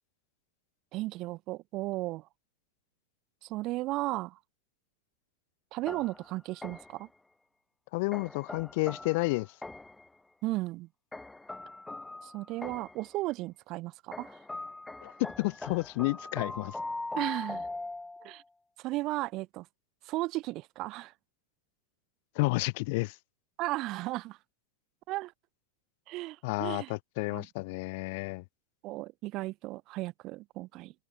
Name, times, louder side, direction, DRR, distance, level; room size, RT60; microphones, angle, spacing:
voice 1, 0.9-2.3 3.4-4.4 5.7-7.1 10.4-10.9 12.2-14.4 17.1-17.7 18.2-18.4 18.8-19.7 20.0-21.1 23.6-24.4 25.1-25.3 26.1-26.9 27.3-27.5 28.8-30.9, right 19 dB, 40° right, 2.3 m, -35 dB
sound 1, 5.9-7.1 8.1-10.1 11.1-13.1 14.1-18.4, left 2 dB, 5° left, 1.4 m, -41 dB
voice 2, 7.9-9.5 15.0-16.7 22.3-23.1 26.4-28.4, left 26 dB, 50° left, 1.6 m, -31 dB
open air
figure-of-eight pair, 90°, 0 cm